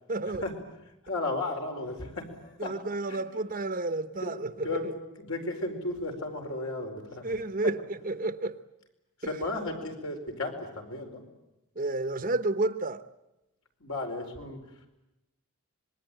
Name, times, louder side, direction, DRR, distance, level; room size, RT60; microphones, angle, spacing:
voice 1, 0.1-0.4 2.6-4.9 7.2-8.6 9.2-9.3 11.8-13.0, right 2 dB, 40° right, 0.9 m, -31 dB
voice 2, 1.0-2.7 3.1-3.2 4.2-4.3 4.6-7.4 9.2-11.2 13.8-14.6, left 2 dB, 75° left, 4.7 m, -34 dB
26.0 x 21.5 x 9.1 m
head